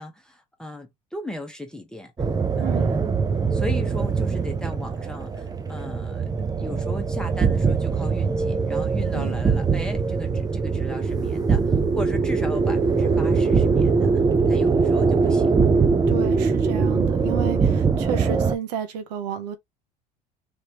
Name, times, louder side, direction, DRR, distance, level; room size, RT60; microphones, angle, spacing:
voice 1, 0.0-2.1 2.6-3.1 3.5-6.2 6.6-14.2 14.5-15.6, left 1 dB, 5° left, 1.2 m, -37 dB
sound 1, 2.2-18.6, right 5 dB, 20° right, 0.6 m, -22 dB
voice 2, 2.6-2.9 9.1-9.4 16.1-19.6, right 7 dB, 80° right, 1.0 m, -31 dB
3.4 x 2.9 x 3.0 m
hypercardioid pair, 80°, 21 cm